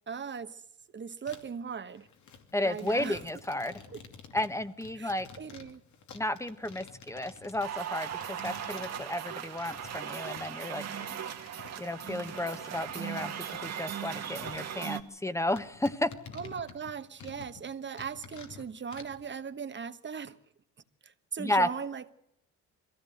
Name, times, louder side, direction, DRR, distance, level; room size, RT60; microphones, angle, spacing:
voice 1, 0.1-0.6 0.9-2.1 2.6-3.2 3.9-4.0 4.9-5.8 16.3-20.4 21.0-22.1, right 6 dB, 40° right, 1.3 m, -39 dB
sound 1, 1.3-1.6 2.0-10.7 11.0-14.6 15.0-15.1 15.5-17.7 18.0-19.2, left 5 dB, 70° left, 2.7 m, -51 dB
voice 2, 2.5-3.8 4.3-5.3 6.1-10.8 11.8-16.1 21.4-21.7, left 1 dB, 10° left, 1.3 m, -33 dB
sound 2, 7.6-15.0, right 9 dB, 60° right, 1.9 m, -38 dB
22.5 x 16.0 x 7.9 m
cardioid pair, 90°, 30 cm